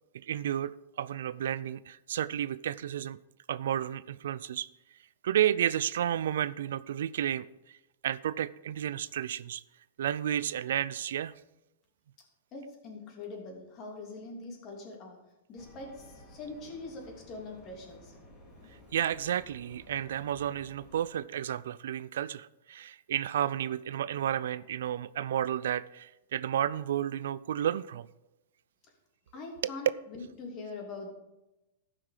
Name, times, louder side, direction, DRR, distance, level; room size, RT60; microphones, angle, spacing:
voice 1, 0.2-3.2 3.5-4.7 5.2-7.8 8.0-9.6 10.0-11.3 18.9-28.1 29.6-29.7, right 10 dB, 75° right, 18 dB, 0.3 m, -32 dB
voice 2, 12.5-15.2 15.5-18.2 29.3-31.1, left 3 dB, 35° left, 0 dB, 2.9 m, -43 dB
sound 1, 15.6-21.0, left 1 dB, 15° left, 2.5 m, -55 dB
13.5 x 5.7 x 5.0 m, 0.96 s
hypercardioid pair, 130°, 0 cm